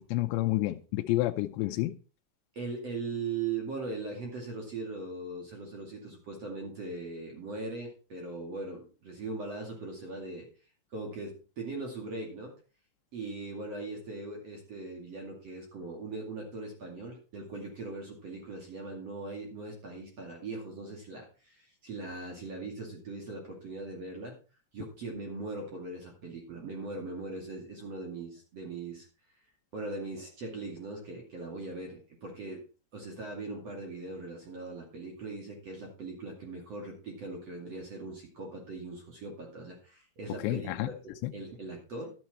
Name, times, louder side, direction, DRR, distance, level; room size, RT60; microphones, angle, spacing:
voice 1, 0.0-1.9 40.4-40.9 41.2-41.3, left 17 dB, 85° left, 5 dB, 2.9 m, -29 dB
voice 2, 2.5-10.5 10.9-12.5 13.1-24.3 24.7-29.1 29.7-32.6 32.9-40.9 41.3-42.1, right 3 dB, 40° right, 0 dB, 2.9 m, -40 dB
12.0 x 9.4 x 4.3 m, 0.35 s
omnidirectional pair, 5.1 m